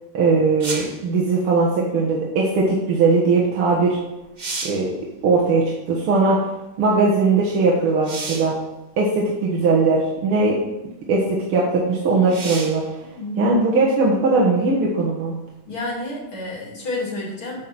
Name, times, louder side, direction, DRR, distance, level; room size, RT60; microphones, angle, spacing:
voice 1, 0.1-4.0 4.6-4.9 5.2-6.5 6.8-8.6 9.0-10.6 11.1-13.0 13.4-15.3, right 3 dB, 75° right, -4 dB, 2.3 m, -19 dB
sound 1, 0.6-1.0 3.7-3.8 4.2-4.9 8.0-8.6 9.6-9.7 12.3-12.9 16.5-16.6, right 3 dB, 50° right, 0.5 m, -31 dB
voice 2, 13.0-13.5 15.7-17.6, left 2 dB, 65° left, -4 dB, 3.5 m, -30 dB
9.3 x 6.3 x 6.0 m, 0.99 s
omnidirectional pair, 2.4 m